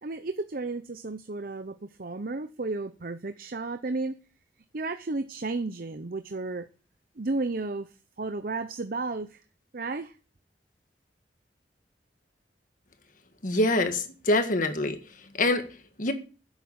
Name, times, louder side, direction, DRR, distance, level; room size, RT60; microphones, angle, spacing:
voice 1, 0.0-4.2 4.7-6.7 7.2-9.4 9.7-10.1, right 3 dB, 50° right, 0.7 m, -33 dB
voice 2, 13.4-15.0 15.4-15.7 16.0-16.1, left 2 dB, 45° left, 1.7 m, -24 dB
10.5 x 8.2 x 8.7 m
head